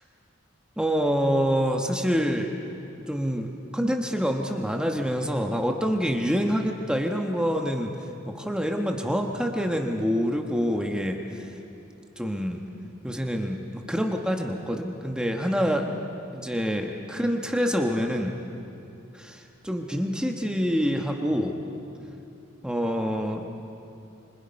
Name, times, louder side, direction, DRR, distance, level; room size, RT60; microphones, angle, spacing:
voice 1, 0.8-2.5 3.1-7.9 8.3-11.5 12.2-12.6 13.0-16.1 16.3-18.3 19.1-21.5 22.6-23.5, equal, 5° right, 2 dB, 1.2 m, -26 dB
26.5 x 25.0 x 5.3 m, 2.8 s
head